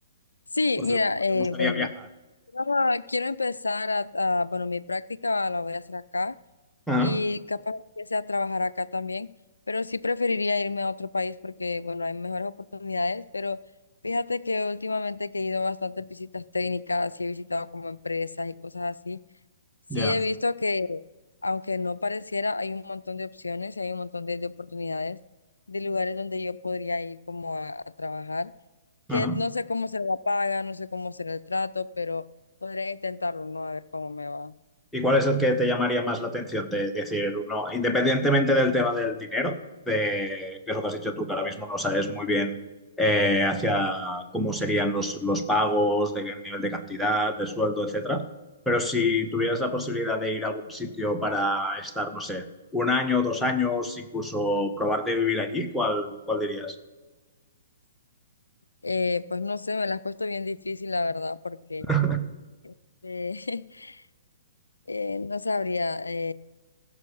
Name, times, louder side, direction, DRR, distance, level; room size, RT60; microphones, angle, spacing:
voice 1, 0.5-1.9 2.5-6.4 7.0-9.3 9.7-13.6 14.0-19.2 19.9-21.0 21.4-25.2 25.7-28.5 29.1-32.3 32.6-34.5 49.4-49.5 58.8-61.9 62.6-62.7 63.0-64.0 64.9-66.3, left 3 dB, 75° left, 15 dB, 0.3 m, -29 dB
voice 2, 1.3-1.9 6.9-7.2 19.9-20.2 29.1-29.4 34.9-39.6 39.9-42.6 43.0-48.3 48.7-52.4 52.7-56.8 61.9-62.3, left 1 dB, 5° left, 4 dB, 1.1 m, -26 dB
15.5 x 6.1 x 7.3 m, 1.2 s
figure-of-eight pair, 120°, 0 cm